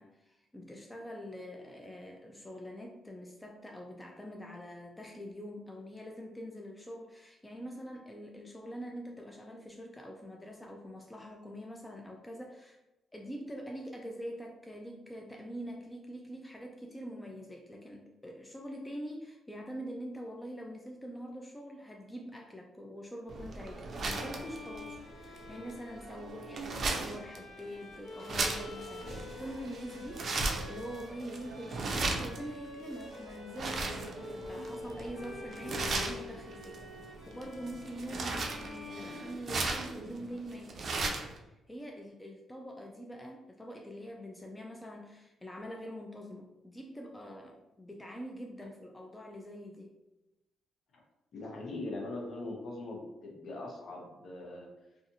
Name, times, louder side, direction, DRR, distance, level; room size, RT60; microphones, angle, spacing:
voice 1, 0.0-12.8 13.1-50.0, equal, 10° left, 1 dB, 0.3 m, -45 dB
sound 1, 23.3-41.4, right 3 dB, 50° right, 0.4 m, -37 dB
Bowed string instrument, 23.9-39.9, left 3 dB, 80° left, 1.1 m, -48 dB
voice 2, 51.3-54.7, left 2 dB, 60° left, -1 dB, 0.8 m, -41 dB
2.6 x 2.4 x 2.6 m, 0.97 s
cardioid pair, 90°, 0 cm